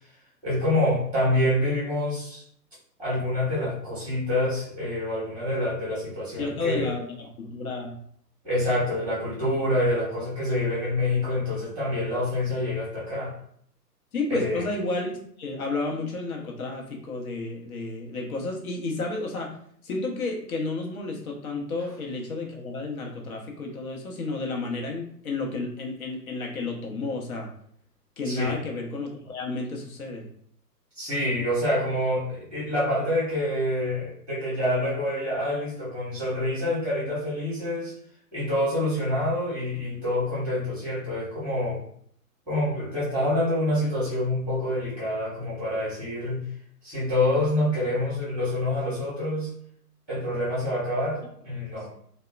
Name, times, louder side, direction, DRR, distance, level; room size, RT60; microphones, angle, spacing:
voice 1, 0.4-2.4 3.0-6.9 8.4-13.4 14.3-14.7 28.2-28.6 30.9-37.9 38.3-41.8 42.5-46.5 46.8-49.5 50.1-52.0, left 1 dB, 5° right, -10 dB, 0.9 m, -27 dB
voice 2, 6.4-8.0 14.1-15.1 15.4-19.5 19.8-27.5 28.2-30.2, left 3 dB, 60° left, 0 dB, 0.8 m, -31 dB
2.8 x 2.1 x 2.3 m, 0.65 s
figure-of-eight pair, 125°, 49 cm